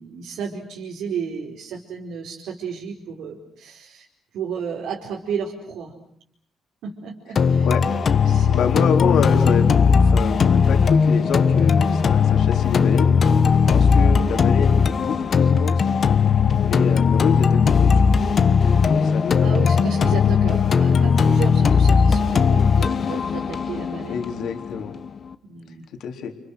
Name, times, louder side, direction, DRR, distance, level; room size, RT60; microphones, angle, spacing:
voice 1, 0.0-4.1 4.3-5.9 6.8-7.7 8.2-8.6 14.0-14.1 18.7-18.8 19.4-24.2 25.4-25.8, right 6 dB, 85° right, -1 dB, 4.8 m, -33 dB
sound 1, 7.4-25.3, left 6 dB, 40° left, 1.2 m, -18 dB
voice 2, 8.5-9.7 10.0-13.2 13.7-15.9 16.6-18.2 18.7-19.9 24.1-25.0 26.0-26.3, left 7 dB, 70° left, 3 dB, 3.7 m, -27 dB
30.0 x 29.5 x 6.4 m, 0.66 s
cardioid pair, 150°, 0 cm